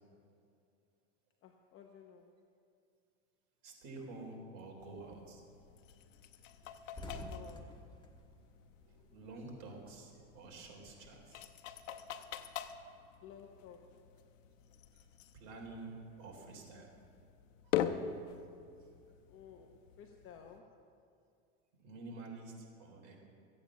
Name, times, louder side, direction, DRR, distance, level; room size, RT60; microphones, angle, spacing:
voice 1, 1.4-2.3 7.3-7.7 13.2-13.9 19.3-20.7, left 8 dB, 35° left, 3 dB, 0.9 m, -55 dB
voice 2, 3.6-5.4 8.9-12.1 12.8-12.9 14.9-15.0 15.3-15.9 16.2-16.9 17.6-17.8 18.8-18.9 21.8-23.2, right 3 dB, 55° right, 0 dB, 3.7 m, -50 dB
sound 1, 4.8-20.6, left 9 dB, 85° left, 0.9 m, -44 dB
sound 2, 5.0-5.2 5.6-5.7 6.0-6.1 6.4-9.4 9.7-11.4, left 1 dB, 10° left, 1.2 m, -50 dB
15.0 x 8.7 x 7.3 m, 2.4 s
supercardioid pair, 130°, 38 cm